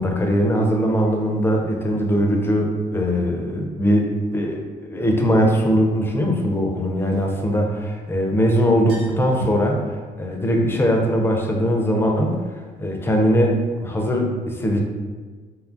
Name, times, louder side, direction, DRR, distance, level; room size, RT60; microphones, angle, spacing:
voice 1, 0.0-4.1 4.3-9.8 10.2-12.4 12.8-14.8, equal, 15° left, 1 dB, 0.4 m, -20 dB
sound 1, 4.3-4.4 6.8-8.1 8.4-8.5 8.7-9.7, equal, 75° right, 0.9 m, -37 dB
2.8 x 2.3 x 2.5 m, 1.4 s
cardioid pair, 110°, 17 cm